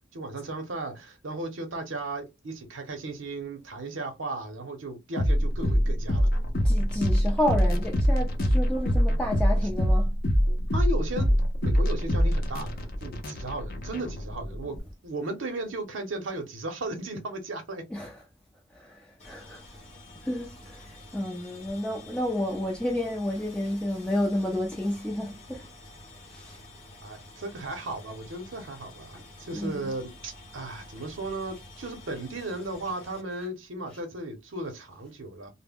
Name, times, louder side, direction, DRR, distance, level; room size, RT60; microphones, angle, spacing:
voice 1, 0.1-6.3 10.7-11.3 11.6-17.8 27.0-35.5, right 2 dB, 75° right, 0.7 m, -36 dB
sound 1, 5.2-14.8, equal, 50° left, 0.6 m, -24 dB
voice 2, 6.6-10.2 17.9-18.2 18.7-19.6 20.2-25.7 26.3-26.6 29.5-29.9, left 1 dB, 5° left, 0.4 m, -31 dB
sound 2, 19.2-33.2, left 2 dB, 35° left, 0.9 m, -49 dB
2.1 x 2.0 x 3.4 m
head